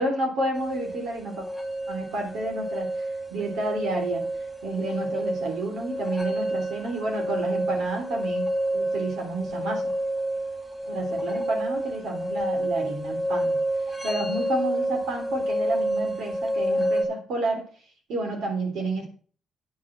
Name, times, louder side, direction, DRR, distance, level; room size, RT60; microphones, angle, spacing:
voice 1, 0.0-1.4 1.9-2.9 3.3-4.3 4.6-9.9 10.9-13.6 14.0-17.6 18.1-19.1, right 2 dB, 80° right, 1 dB, 3.7 m, -30 dB
sound 1, 0.5-17.1, right 1 dB, 5° left, 2.2 m, -29 dB
9.4 x 5.6 x 6.3 m, 0.42 s
cardioid pair, 90°, 0 cm